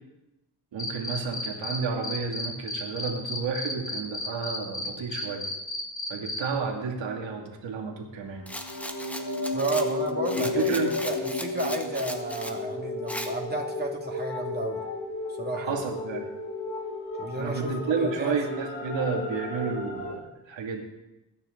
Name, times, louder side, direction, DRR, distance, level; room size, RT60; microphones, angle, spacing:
voice 1, 0.7-5.5 6.1-8.5 10.4-10.9 15.6-16.3 17.3-20.8, right 5 dB, 90° right, 2 dB, 2.6 m, -31 dB
Cricket, 0.8-1.8 2.0-6.4, left 2 dB, 40° left, 3.0 m, -32 dB
sound 1, 8.3-20.1, left 3 dB, 55° left, 4.4 m, -33 dB
Rattle, 8.5-12.6 13.1-13.3, equal, 5° left, 1.6 m, -38 dB
voice 2, 9.5-10.6 11.0-14.8 15.4-15.8 17.2-18.4, right 2 dB, 20° right, 0 dB, 2.6 m, -32 dB
21.5 x 9.8 x 4.0 m, 0.95 s
cardioid pair, 80°, 44 cm